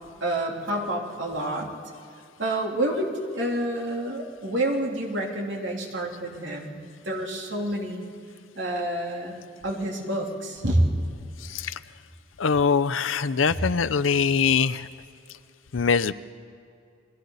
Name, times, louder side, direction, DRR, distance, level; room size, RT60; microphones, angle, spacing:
voice 1, 0.2-1.7 2.4-8.0 8.6-9.4 9.6-10.8, right 1 dB, 70° right, -1 dB, 3.5 m, -28 dB
voice 2, 11.4-11.8 12.4-14.9 15.7-16.1, left 6 dB, 90° left, 15 dB, 0.6 m, -23 dB
30.0 x 21.5 x 4.1 m, 2.4 s
head